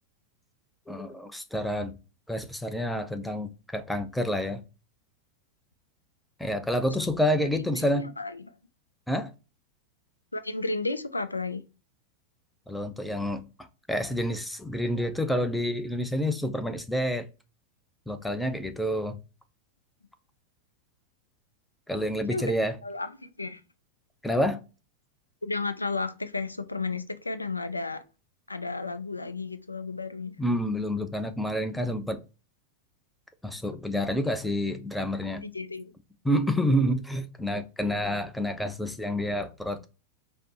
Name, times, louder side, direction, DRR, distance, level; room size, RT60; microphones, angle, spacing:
voice 1, 0.9-1.9 2.3-4.6 6.4-8.1 9.1-9.3 12.7-13.5 13.9-17.3 18.1-19.2 21.9-22.7 24.2-24.6 30.4-32.2 33.4-35.5 36.2-39.9, equal, 5° left, 0.4 m, -28 dB
voice 2, 7.7-8.5 10.3-11.6 22.3-22.4 22.8-23.6 25.4-28.0 28.5-30.4 35.4-35.9, left 3 dB, 80° left, 0.3 m, -33 dB
4.9 x 2.0 x 2.8 m
figure-of-eight pair, 90°, 0 cm